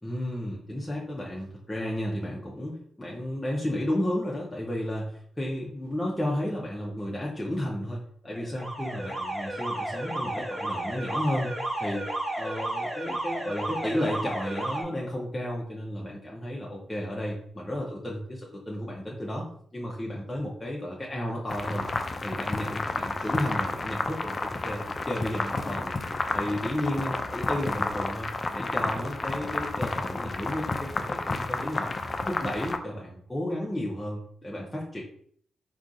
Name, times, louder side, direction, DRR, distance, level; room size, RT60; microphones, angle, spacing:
voice 1, 0.0-11.5 11.8-12.1 12.3-19.5 19.7-21.9 22.2-26.0 26.3-31.9 32.3-35.0, left 1 dB, 20° left, -4 dB, 0.7 m, -33 dB
Alarm, 8.3-14.8, right 1 dB, 15° right, 0.9 m, -33 dB
sound 1, 21.5-32.8, left 3 dB, 45° left, 0.4 m, -31 dB
3.5 x 2.4 x 2.6 m, 0.62 s
hypercardioid pair, 40°, 0 cm